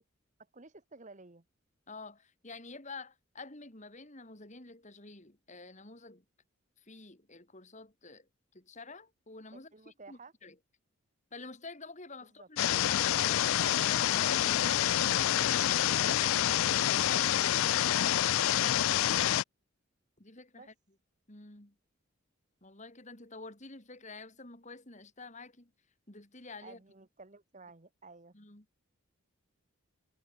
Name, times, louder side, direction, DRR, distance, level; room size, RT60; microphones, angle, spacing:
voice 1, 0.5-1.4 9.5-10.3 12.2-12.5 20.5-20.7 26.6-28.3, right 3 dB, 35° right, 1.2 m, -53 dB
voice 2, 1.9-6.2 6.8-8.3 8.5-10.5 11.3-17.2 20.2-20.7 21.3-21.7 22.6-25.7 26.1-26.8 28.3-28.6, left 3 dB, 35° left, 2.9 m, -49 dB
sound 1, 12.6-19.4, left 12 dB, 75° left, 0.4 m, -27 dB
head